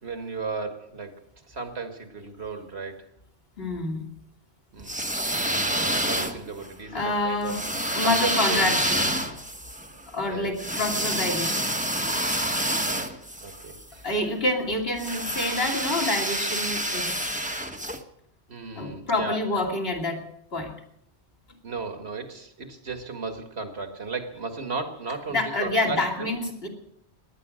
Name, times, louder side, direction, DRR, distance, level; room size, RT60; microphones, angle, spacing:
voice 1, 0.0-1.2 1.5-3.1 4.7-5.1 6.0-7.6 8.0-8.8 10.3-10.5 12.6-13.1 13.4-14.1 18.5-19.6 21.6-26.3, right 4 dB, 70° right, 6 dB, 2.1 m, -35 dB
voice 2, 3.6-4.0 6.9-7.6 7.9-9.1 10.1-11.7 14.0-17.4 18.7-20.2 20.5-20.7 25.3-26.7, left 2 dB, 60° left, 1 dB, 3.0 m, -27 dB
sound 1, 4.8-6.7 7.5-13.8 15.0-18.0, right 1 dB, 5° right, 1.1 m, -28 dB
18.0 x 11.0 x 6.3 m, 0.75 s
omnidirectional pair, 1.1 m